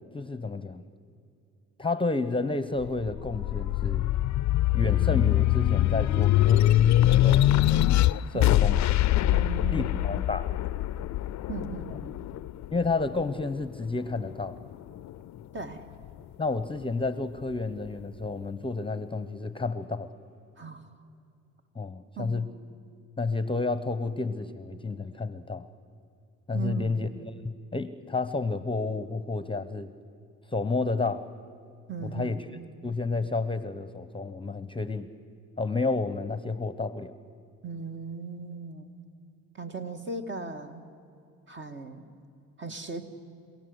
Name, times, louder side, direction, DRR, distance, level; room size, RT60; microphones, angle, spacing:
voice 1, 0.1-0.8 1.8-4.1 4.7-7.9 8.3-8.8 9.7-10.5 12.7-14.6 16.4-20.1 21.7-22.5 23.2-25.7 26.5-29.9 30.5-31.3 32.1-32.4 32.8-35.1 35.6-37.2, left 3 dB, 15° left, 12 dB, 0.9 m, -30 dB
sound 1, 2.8-13.6 14.1-15.3, left 14 dB, 65° left, 0.5 m, -23 dB
voice 2, 9.3-10.1 11.5-12.2 15.5-15.8 20.6-20.9 22.2-22.4 26.5-27.0 31.9-32.4 37.6-38.9 39.5-40.9 41.5-42.0 42.6-43.0, right 4 dB, 40° right, 6 dB, 2.1 m, -37 dB
27.0 x 17.5 x 8.1 m, 2.5 s
cardioid pair, 90°, 30 cm